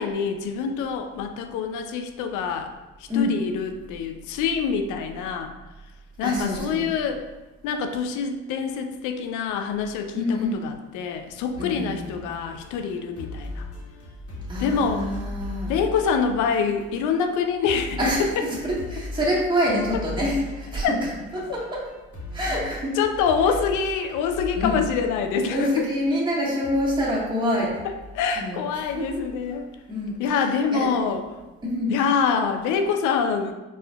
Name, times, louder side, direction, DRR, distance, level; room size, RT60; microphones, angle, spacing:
voice 1, 0.0-2.7 3.0-5.5 6.2-7.2 7.6-13.7 14.6-15.1 15.7-18.5 20.8-21.0 23.0-25.9 27.8-29.7 30.2-31.2 31.9-33.5, left 6 dB, 65° left, 5 dB, 0.5 m, -25 dB
voice 2, 6.2-6.8 10.1-10.6 11.6-12.1 14.5-15.7 18.0-20.9 21.3-21.8 22.3-23.0 24.5-24.8 25.5-27.7 28.4-28.6 29.0-29.2 29.9-30.2 30.7-30.9 31.6-32.0, left 1 dB, 15° right, -6 dB, 1.4 m, -26 dB
sound 1, 11.5-17.4 17.6-26.2 26.6-29.8 31.1-31.4, left 2 dB, 45° left, 1.2 m, -38 dB
4.2 x 2.5 x 2.2 m, 1.1 s
hypercardioid pair, 55°, 33 cm